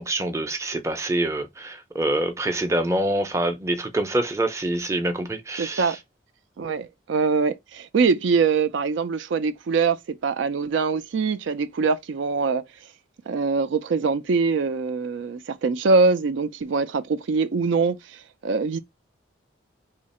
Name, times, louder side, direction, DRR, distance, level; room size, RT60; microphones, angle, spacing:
voice 1, 0.0-6.0, right 1 dB, 15° right, 0.5 m, -26 dB
voice 2, 5.6-6.0 6.6-12.6 13.3-18.8, right 4 dB, 75° right, 0.4 m, -23 dB
2.8 x 2.5 x 4.1 m
head